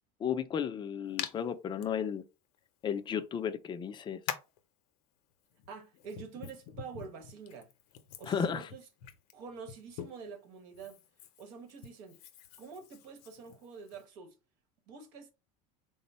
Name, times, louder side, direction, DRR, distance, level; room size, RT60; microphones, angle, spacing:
voice 1, 0.2-2.3 2.8-4.2 8.3-8.7, left 7 dB, 25° left, 0.4 m, -34 dB
Hands, 1.2-1.3 1.8-1.9 3.1-3.2 4.3-4.6 5.5-10.3 10.7-14.0, left 9 dB, 85° left, 0.6 m, -44 dB
voice 2, 5.7-7.7 8.2-8.8 9.3-11.0 11.4-12.2 12.6-14.3 14.9-15.3, right 5 dB, 70° right, 1.1 m, -47 dB
3.6 x 2.1 x 4.1 m
supercardioid pair, 115°, 19 cm